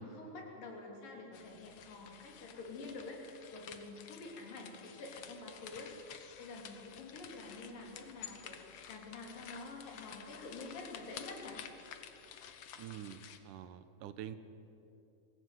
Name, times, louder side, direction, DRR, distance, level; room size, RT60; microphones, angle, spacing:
voice 1, 0.0-8.6 8.9-11.6, left 3 dB, 80° left, 0 dB, 4.8 m, -48 dB
sound 1, 1.3-13.4, left 9 dB, 65° left, 1.8 m, -52 dB
voice 2, 12.8-13.2 13.4-14.4, right 11 dB, 75° right, 12 dB, 2.3 m, -46 dB
21.5 x 16.0 x 9.2 m, 3.0 s
omnidirectional pair, 3.9 m